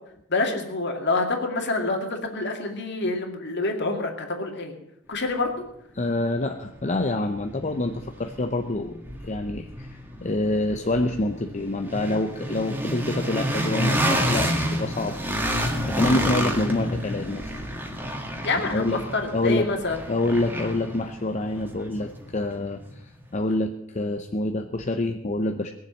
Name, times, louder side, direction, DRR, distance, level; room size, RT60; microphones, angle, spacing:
voice 1, 0.3-4.7 5.1-5.5 18.4-20.0, left 3 dB, 55° left, 3 dB, 2.3 m, -27 dB
voice 2, 5.9-9.0 9.2-15.2 15.9-17.5 18.6-19.0 19.3-19.7 20.1-25.7, left 2 dB, 35° left, 5 dB, 0.7 m, -27 dB
sound 1, 6.4-6.5 6.9-22.9, equal, 10° right, 1.8 m, -29 dB
19.5 x 7.4 x 7.5 m, 0.80 s
head